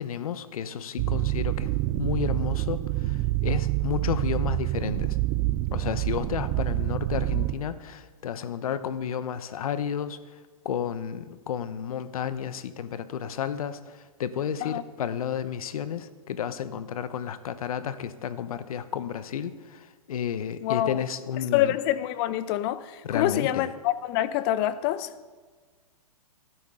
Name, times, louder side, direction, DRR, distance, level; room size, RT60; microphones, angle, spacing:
voice 1, 0.0-1.7 2.0-5.2 5.7-10.2 10.6-21.8 23.0-23.7, left 8 dB, 70° left, 0.9 m, -32 dB
sound 1, 1.0-7.5, right 18 dB, 35° right, 0.5 m, -27 dB
voice 2, 20.6-21.0 21.5-25.1, left 13 dB, 40° left, 0.7 m, -26 dB
18.5 x 12.5 x 3.8 m
hypercardioid pair, 125°, 19 cm